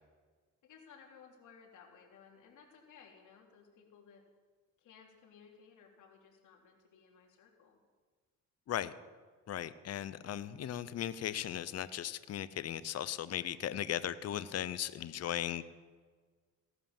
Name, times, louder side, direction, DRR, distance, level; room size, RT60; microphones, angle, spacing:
voice 1, 0.6-4.2 4.8-7.8 15.1-15.4, left 6 dB, 80° left, 1 dB, 3.2 m, -59 dB
voice 2, 9.5-15.6, left 11 dB, 55° left, 15 dB, 0.8 m, -37 dB
17.0 x 11.0 x 7.3 m, 1.5 s
cardioid pair, 90°, 30 cm